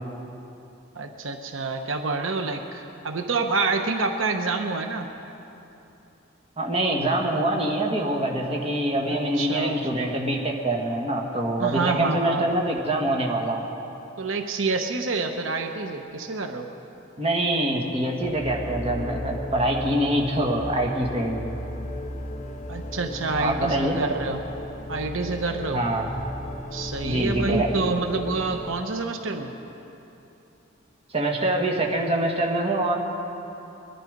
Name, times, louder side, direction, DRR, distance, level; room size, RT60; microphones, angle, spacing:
voice 1, 0.9-5.1 9.0-9.8 11.6-12.5 14.2-16.7 22.7-24.4 24.9-25.8 26.7-29.5, right 3 dB, 85° right, 6 dB, 0.9 m, -27 dB
voice 2, 6.6-13.6 17.2-21.5 23.4-24.0 25.7-26.1 27.0-27.7 31.1-32.9, right 1 dB, 30° right, 0 dB, 1.7 m, -25 dB
sound 1, 18.2-28.8, left 1 dB, 35° left, 1.1 m, -35 dB
22.0 x 11.5 x 5.3 m, 2.9 s
head